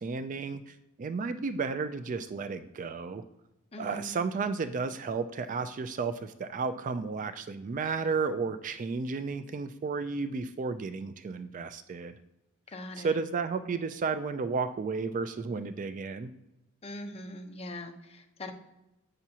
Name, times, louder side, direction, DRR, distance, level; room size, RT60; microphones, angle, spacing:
voice 1, 0.0-3.2 3.8-12.1 13.0-16.3, right 4 dB, 40° right, 11 dB, 0.3 m, -33 dB
voice 2, 3.7-4.2 12.7-13.2 16.8-18.5, left 1 dB, 30° left, 4 dB, 0.8 m, -41 dB
7.8 x 5.9 x 2.8 m, 0.93 s
head